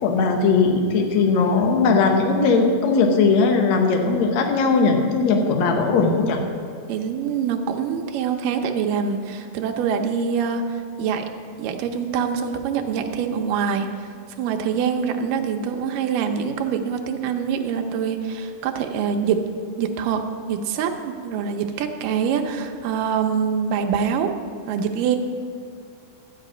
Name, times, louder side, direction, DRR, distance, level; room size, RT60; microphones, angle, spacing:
voice 1, 0.0-6.4, left 4 dB, 65° left, 4 dB, 1.8 m, -19 dB
voice 2, 5.3-5.8 6.9-11.3 11.6-14.1 14.4-19.4 19.8-24.3 24.7-25.2, right 7 dB, 75° right, 4 dB, 2.2 m, -25 dB
12.5 x 9.1 x 5.0 m, 2.2 s
omnidirectional pair, 4.3 m